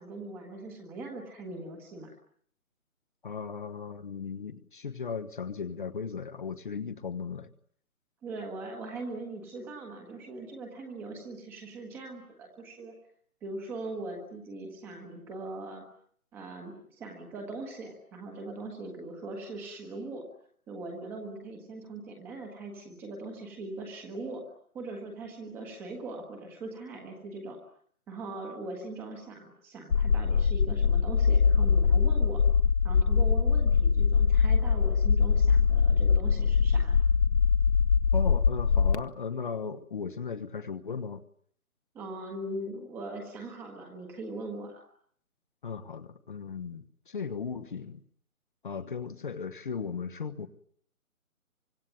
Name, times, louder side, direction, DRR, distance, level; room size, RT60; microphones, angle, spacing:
voice 1, 0.0-2.1 8.2-12.9 13.4-15.8 16.3-20.2 20.7-24.4 24.7-27.6 28.1-32.4 32.8-37.0 41.9-44.8, right 2 dB, 5° right, 2 dB, 1.4 m, -40 dB
voice 2, 3.2-7.5 38.1-41.2 45.6-48.0 48.6-50.5, left 6 dB, 35° left, 8 dB, 1.2 m, -36 dB
sound 1, 29.9-38.9, left 6 dB, 50° left, 1.6 m, -23 dB
25.5 x 22.5 x 9.2 m, 0.63 s
hypercardioid pair, 165°, 43 cm